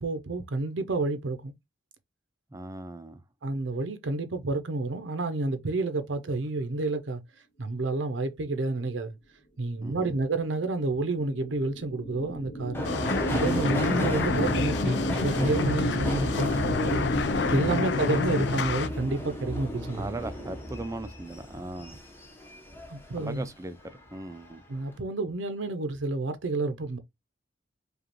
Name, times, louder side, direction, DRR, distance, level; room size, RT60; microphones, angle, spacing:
voice 1, 0.0-1.5 3.4-7.2 7.6-9.1 9.6-12.9 13.3-17.0 17.5-20.1 22.9-23.5 24.7-27.0, right 2 dB, 85° right, 0.7 m, -30 dB
voice 2, 2.5-3.2 9.8-10.2 17.6-17.9 19.9-22.0 23.2-24.6, right 2 dB, 15° right, 0.4 m, -38 dB
sound 1, 10.2-18.6, right 2 dB, 45° left, 1.6 m, -34 dB
Subway metro underground, 12.7-23.5 23.8-24.5 24.8-24.9, left 1 dB, 10° left, 0.9 m, -34 dB
sound 2, 12.8-18.9, left 4 dB, 65° left, 0.5 m, -29 dB
5.0 x 2.4 x 3.0 m
head